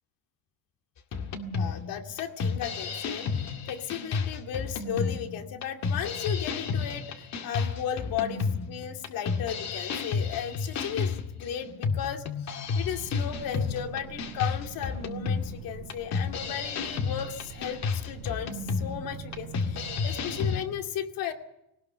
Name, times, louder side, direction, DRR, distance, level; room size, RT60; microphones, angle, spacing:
sound 1, 1.1-20.6, left 5 dB, 45° left, 2.1 m, -31 dB
voice 1, 1.5-3.4 3.7-21.3, left 9 dB, 65° left, 4 dB, 2.6 m, -35 dB
sound 2, 12.8-20.5, right 9 dB, 90° right, 2.9 m, -46 dB
20.5 x 18.5 x 6.9 m, 0.84 s
cardioid pair, 155°, 36 cm